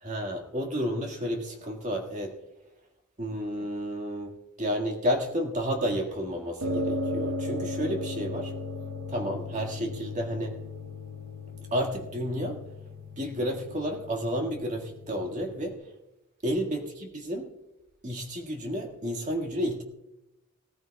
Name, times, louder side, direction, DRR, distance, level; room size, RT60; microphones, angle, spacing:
voice 1, 0.0-2.3 3.2-4.3 4.6-8.5 9.1-10.6 11.7-12.6 13.2-15.8 16.4-17.5 18.0-19.8, equal, 35° right, 2 dB, 1.8 m, -31 dB
sound 1, 6.6-15.7, left 2 dB, 70° right, 1.0 m, -36 dB
19.0 x 14.0 x 2.3 m, 0.90 s
head